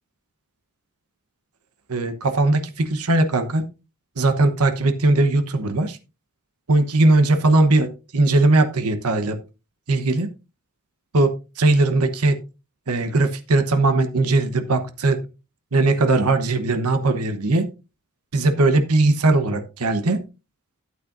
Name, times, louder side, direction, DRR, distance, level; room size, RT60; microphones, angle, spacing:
voice 1, 1.9-3.6 4.2-6.0 6.7-9.4 9.9-10.3 11.1-12.4 12.9-15.2 15.7-17.6 18.3-20.2, right 2 dB, 75° right, 9 dB, 1.1 m, -19 dB
12.5 x 8.7 x 2.6 m, 0.29 s
head